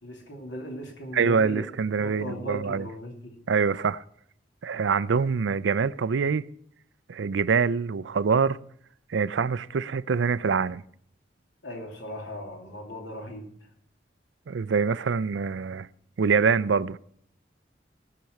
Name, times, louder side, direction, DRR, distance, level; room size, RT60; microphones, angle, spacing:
voice 1, 0.0-3.4 11.6-13.5, equal, 80° left, 2.9 m, -38 dB
voice 2, 1.1-2.9 3.5-4.0 4.6-6.4 7.1-8.6 9.1-10.8 14.5-15.9 16.2-17.0, right 5 dB, 75° right, 0.4 m, -25 dB
17.5 x 6.0 x 6.5 m
head